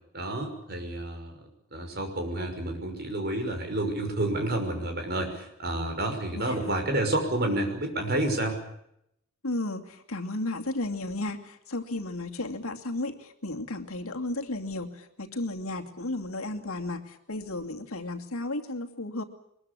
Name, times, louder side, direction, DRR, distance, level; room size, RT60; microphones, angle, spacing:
voice 1, 0.1-1.3 1.7-8.6, right 1 dB, 45° right, 5 dB, 5.9 m, -29 dB
voice 2, 6.3-6.7 9.4-19.2, left 2 dB, 80° left, 4 dB, 2.6 m, -34 dB
23.0 x 21.5 x 8.6 m, 0.76 s
head